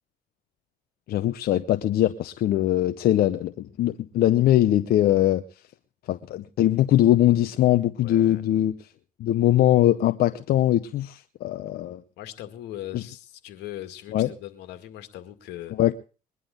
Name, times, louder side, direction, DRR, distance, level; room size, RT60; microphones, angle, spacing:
voice 1, 1.1-5.4 6.1-8.8 9.2-12.0 12.9-13.0 14.1-14.3 15.8-15.9, left 13 dB, 65° left, 9 dB, 0.8 m, -21 dB
voice 2, 8.0-8.4 12.2-15.7, left 13 dB, 85° left, 10 dB, 2.0 m, -39 dB
22.0 x 11.0 x 3.8 m, 0.35 s
cardioid pair, 110°, 17 cm